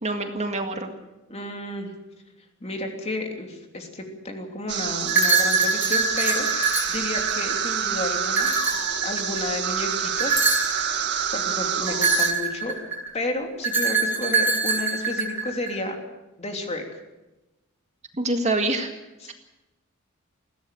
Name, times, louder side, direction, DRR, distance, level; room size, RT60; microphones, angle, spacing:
voice 1, 0.0-0.9 18.2-18.9, right 2 dB, 35° right, 5 dB, 1.9 m, -25 dB
voice 2, 1.3-1.9 2.6-6.5 6.9-8.5 9.0-10.4 10.7-11.0 11.3-12.8 13.1-16.0 16.4-16.8 19.2-19.3, left 2 dB, 30° left, 3 dB, 3.2 m, -31 dB
sound 1, 4.7-12.3, right 8 dB, 55° right, 1.8 m, -27 dB
sound 2, 5.1-7.7 8.3-9.5 10.2-10.8 11.9-13.1 13.6-15.7, right 4 dB, 10° right, 5.3 m, -23 dB
21.5 x 16.5 x 7.7 m, 1.0 s
head